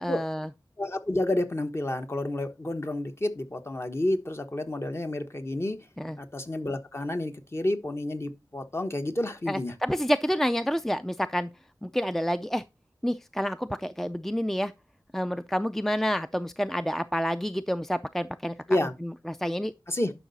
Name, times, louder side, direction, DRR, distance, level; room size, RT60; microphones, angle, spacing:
voice 1, 0.0-0.5 6.0-6.2 9.5-11.5 11.8-12.6 13.0-14.7 15.1-19.7, equal, 5° left, 0.4 m, -29 dB
voice 2, 0.8-5.8 6.2-9.7 18.7-18.9 19.9-20.1, left 1 dB, 35° left, 1.2 m, -30 dB
11.0 x 5.6 x 4.1 m
wide cardioid pair, 75°, 8 cm